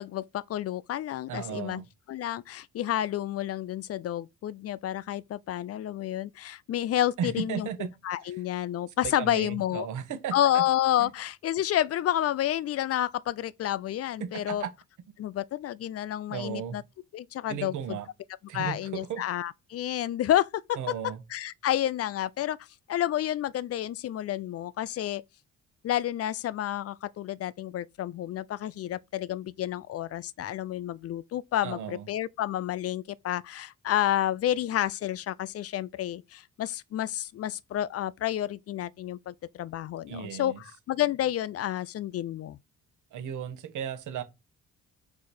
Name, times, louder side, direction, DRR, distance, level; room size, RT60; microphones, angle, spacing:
voice 1, 0.0-1.8 2.1-7.7 8.0-9.9 10.3-14.6 15.2-16.8 17.1-18.0 18.5-22.6 22.9-25.2 25.8-42.6, left 12 dB, 50° left, 0.4 m, -30 dB
voice 2, 1.3-1.9 7.2-7.9 8.3-8.4 9.0-10.6 11.0-11.1 14.2-14.7 16.3-16.8 17.5-18.1 18.5-19.2 20.8-21.2 31.6-32.1 40.1-40.6 43.1-44.2, right 8 dB, 80° right, 1.3 m, -35 dB
5.1 x 4.7 x 4.3 m
cardioid pair, 90°, 30 cm